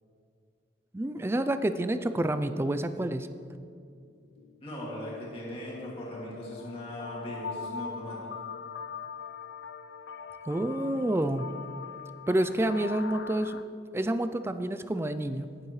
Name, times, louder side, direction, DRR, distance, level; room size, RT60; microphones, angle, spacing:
voice 1, 0.9-3.3 10.5-11.5 12.3-13.6 13.9-15.5, right 1 dB, 15° right, 11 dB, 0.3 m, -28 dB
sound 1, 4.0-4.1 4.4-13.6, left 5 dB, 65° left, 0.4 m, -42 dB
voice 2, 4.6-8.2, left 1 dB, 30° left, -5 dB, 2.3 m, -39 dB
17.5 x 7.4 x 3.2 m, 2.4 s
head